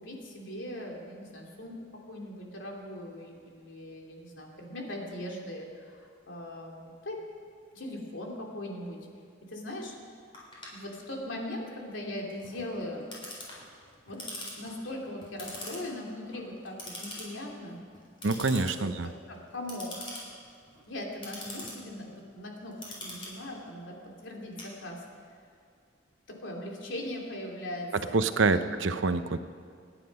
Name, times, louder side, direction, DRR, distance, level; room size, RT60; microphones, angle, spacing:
voice 1, 0.0-1.8 2.1-7.2 7.7-9.0 9.5-9.9 10.7-13.1 14.1-14.2 14.6-17.8 18.8-20.0 20.9-22.8 23.0-24.0 24.2-25.0 26.3-28.2 28.5-28.7, left 1 dB, 80° left, 0 dB, 2.9 m, -40 dB
Clock, 10.3-25.3, left 1 dB, 25° left, 4.3 m, -45 dB
voice 2, 18.2-19.1 28.1-29.4, right 3 dB, 80° right, 10 dB, 0.8 m, -26 dB
27.0 x 10.0 x 5.4 m, 2.2 s
head